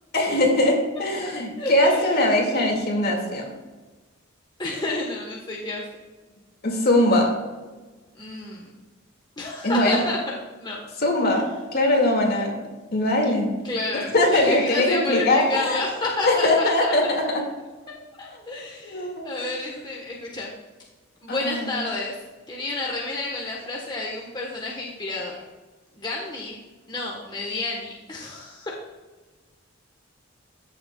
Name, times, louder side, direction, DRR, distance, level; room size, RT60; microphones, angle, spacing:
voice 1, 0.1-3.5 6.6-7.3 9.6-10.0 11.0-11.4 11.7-12.5 12.9-13.5 13.9-15.8 16.3-17.4 18.8-19.3 21.3-21.8, left 1 dB, 50° left, 1 dB, 2.1 m, -21 dB
voice 2, 1.6-2.2 4.6-5.8 8.2-8.7 9.4-10.3 10.6-10.8 13.6-16.9 18.2-20.5 21.2-22.2 22.5-25.3 25.9-26.6 26.9-28.7, left 2 dB, 20° left, -2 dB, 1.2 m, -30 dB
14.5 x 7.1 x 2.3 m, 1.3 s
head